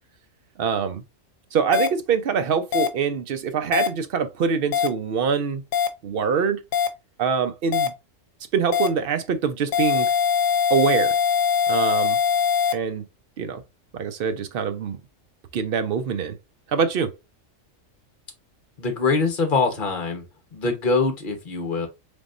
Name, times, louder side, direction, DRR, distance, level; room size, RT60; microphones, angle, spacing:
voice 1, 0.6-1.0 1.5-5.6 6.0-6.6 7.2-7.9 8.5-10.1 10.7-11.2 11.7-12.2 12.7-13.0 13.4-13.6 13.9-15.0 15.5-16.4 16.7-17.1, right 6 dB, 60° right, 0.7 m, -24 dB
sound 1, 1.7-1.9 2.7-2.9 3.7-3.9 4.7-4.9 5.7-5.9 6.7-6.9 7.7-7.9 8.7-8.9 9.7-12.7, left 7 dB, 85° left, 1.0 m, -21 dB
voice 2, 18.8-20.2 20.5-21.9, left 4 dB, 40° left, 1.2 m, -23 dB
4.0 x 3.5 x 2.5 m
omnidirectional pair, 1.3 m